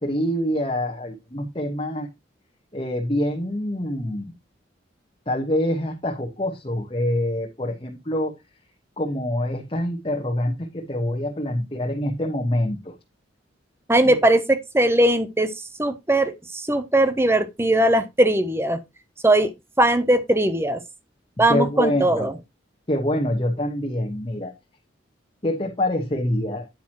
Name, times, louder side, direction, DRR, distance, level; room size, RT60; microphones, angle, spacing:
voice 1, 0.0-2.1 2.7-4.3 5.3-8.3 9.0-12.9 14.0-14.2 21.5-22.3 22.9-24.5 25.4-26.7, left 1 dB, 30° left, 1.2 m, -25 dB
voice 2, 13.9-18.8 19.2-19.5 19.8-20.8 21.4-22.3, right 1 dB, 15° right, 0.6 m, -20 dB
9.4 x 9.0 x 2.9 m
head